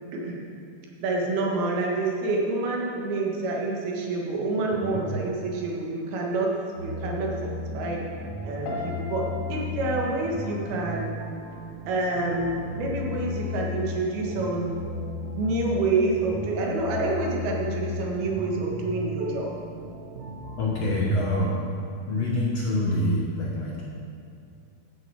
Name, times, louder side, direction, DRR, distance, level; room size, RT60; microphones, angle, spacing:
voice 1, 0.1-0.4 1.0-6.5 6.8-7.5 7.7-8.0 8.4-9.2 9.5-11.2 11.9-14.8 15.4-19.6, right 2 dB, 80° right, -2 dB, 3.5 m, -27 dB
sound 1, 6.8-21.2, left 3 dB, 65° right, 1.1 m, -35 dB
Piano, 8.6-11.7 12.0-12.5, left 2 dB, 75° left, 3.7 m, -39 dB
voice 2, 20.6-21.5 22.1-23.8, left 1 dB, 60° left, -4 dB, 1.9 m, -26 dB
14.0 x 9.4 x 4.8 m, 2.4 s
omnidirectional pair, 4.4 m